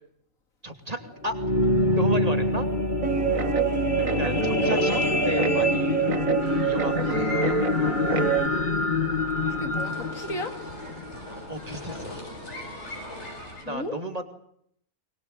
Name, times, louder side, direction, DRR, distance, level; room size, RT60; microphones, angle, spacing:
voice 1, 0.6-1.4 2.0-2.7 4.2-6.1 6.6-7.3 11.5-12.3 13.6-14.2, right 1 dB, 30° right, 7 dB, 2.9 m, -34 dB
sound 1, 1.1-11.6 12.2-12.3, left 2 dB, 35° left, 2.3 m, -26 dB
Guitar, 3.0-8.5, right 7 dB, 85° right, 2.0 m, -26 dB
voice 2, 4.6-5.0 9.5-10.5 13.7-13.9, left 2 dB, 85° left, 7 dB, 3.4 m, -34 dB
sound 2, 6.4-13.6, left 2 dB, 55° left, 7.8 m, -40 dB
23.0 x 21.5 x 9.1 m, 0.70 s
omnidirectional pair, 1.4 m